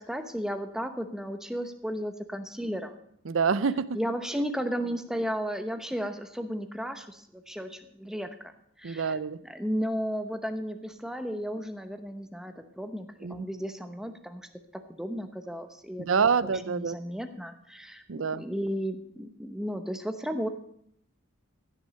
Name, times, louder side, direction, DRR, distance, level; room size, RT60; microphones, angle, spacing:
voice 1, 0.0-3.0 3.9-8.5 8.8-14.5 14.9-16.2 16.7-18.0 18.4-20.5, equal, ahead, 8 dB, 0.9 m, -34 dB
voice 2, 3.3-4.0 8.8-9.4 13.2-13.4 16.0-17.0 18.1-18.4, right 5 dB, 70° right, 18 dB, 0.6 m, -26 dB
15.5 x 7.2 x 6.5 m, 0.69 s
head